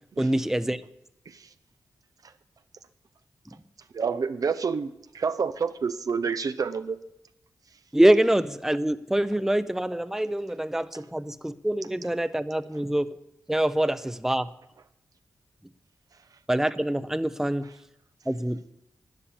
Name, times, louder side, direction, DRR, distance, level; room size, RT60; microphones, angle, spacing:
voice 1, 0.2-0.8 7.9-13.2 13.5-14.5 16.5-17.7 18.3-18.6, right 1 dB, 5° right, 0.7 m, -25 dB
voice 2, 3.9-7.0, right 5 dB, 65° right, 0.7 m, -28 dB
11.5 x 10.0 x 7.1 m
cardioid pair, 55°, 7 cm